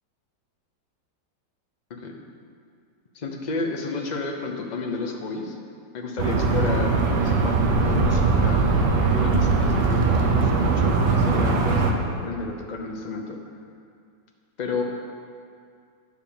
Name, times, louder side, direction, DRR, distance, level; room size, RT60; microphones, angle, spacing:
voice 1, 1.9-2.2 3.1-5.6 5.9-13.4 14.6-14.8, left 3 dB, 45° left, 2 dB, 0.6 m, -31 dB
sound 1, 6.2-11.9, right 4 dB, 75° right, 1.4 m, -21 dB
9.6 x 4.7 x 7.0 m, 2.3 s
omnidirectional pair, 1.9 m